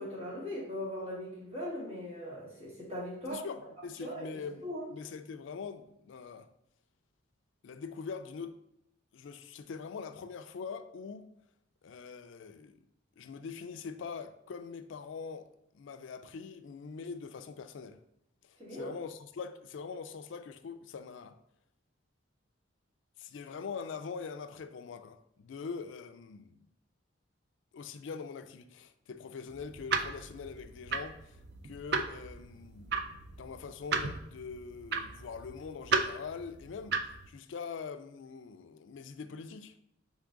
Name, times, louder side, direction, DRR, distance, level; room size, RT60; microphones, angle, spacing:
voice 1, 0.0-3.4 4.0-4.3 4.6-4.9 18.6-18.9, equal, 30° right, 1.6 m, -39 dB
voice 2, 3.3-6.5 7.6-8.6 9.1-11.3 11.8-12.8 13.2-15.5 15.7-18.0 18.4-21.4 23.2-26.6 27.7-31.4 31.6-32.9 33.4-37.0 37.3-39.7, left 5 dB, 75° left, 0.4 m, -43 dB
sound 1, 29.5-37.3, right 5 dB, 55° right, 0.4 m, -35 dB
3.7 x 3.7 x 3.6 m
head